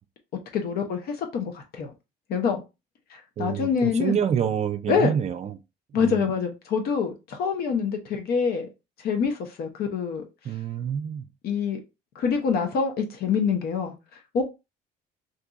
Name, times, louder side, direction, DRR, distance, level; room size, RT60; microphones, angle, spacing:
voice 1, 0.5-1.9 2.3-2.6 3.1-4.2 4.9-5.1 5.9-8.7 9.0-10.2 11.4-11.8 12.2-13.9 14.3-14.4, left 6 dB, 65° left, 0.7 m, -25 dB
voice 2, 3.4-5.6 5.9-6.3 10.5-11.2, right 8 dB, 40° right, 0.4 m, -27 dB
2.6 x 2.3 x 3.8 m
cardioid pair, 110°, 17 cm